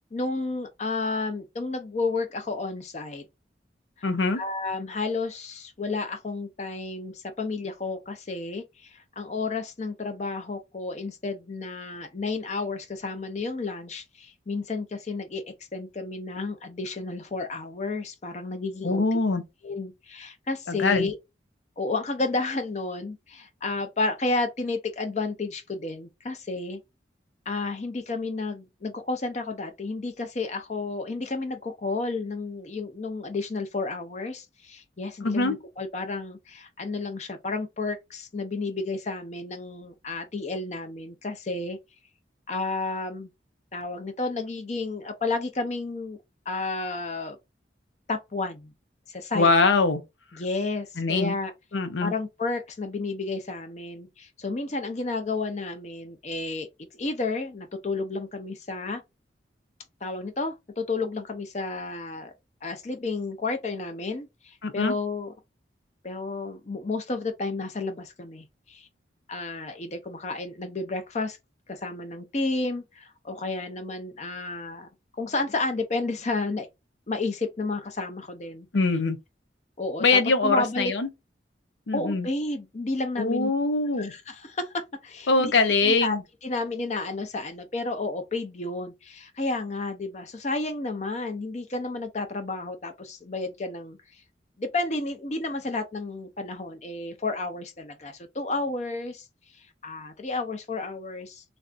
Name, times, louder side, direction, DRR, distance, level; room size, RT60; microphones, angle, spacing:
voice 1, 0.1-3.2 4.3-15.4 15.7-19.2 19.6-21.2 21.8-26.8 27.5-41.8 42.5-43.3 43.7-46.2 46.5-47.4 48.1-48.7 49.1-49.5 50.3-51.5 52.0-59.0 60.0-62.3 62.6-65.3 66.0-68.9 69.3-71.4 71.7-74.9 75.2-76.7 77.1-78.7 79.8-80.9 81.9-83.5 84.0-86.2 86.4-94.0 94.6-99.3 99.6-101.4, left 3 dB, 40° left, 0.5 m, -31 dB
voice 2, 4.0-4.4 18.8-19.4 20.7-21.1 35.2-35.6 49.3-50.0 51.0-51.3 51.7-52.1 64.6-64.9 78.7-79.2 80.0-81.1 81.9-82.3 83.2-84.1 85.3-86.2, left 3 dB, 85° left, 0.6 m, -23 dB
3.3 x 2.6 x 2.4 m
head